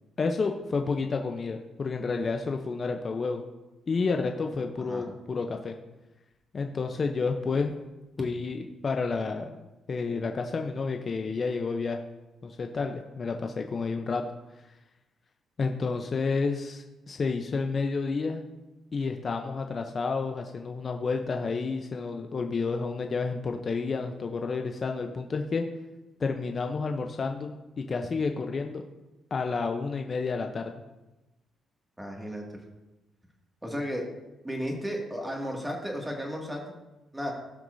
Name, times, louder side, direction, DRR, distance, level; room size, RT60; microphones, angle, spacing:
voice 1, 0.2-3.4 3.9-5.7 6.5-7.8 8.2-9.5 9.9-12.0 12.4-14.2 14.7-14.8 15.6-18.5 18.9-25.6 26.2-28.8 29.3-30.7, left 4 dB, 40° left, 4 dB, 0.7 m, -30 dB
voice 2, 32.0-32.4 33.6-34.1 34.4-36.6 37.1-37.3, equal, 10° right, 0 dB, 2.2 m, -33 dB
16.5 x 6.1 x 2.7 m, 1.0 s
cardioid pair, 90°, 0 cm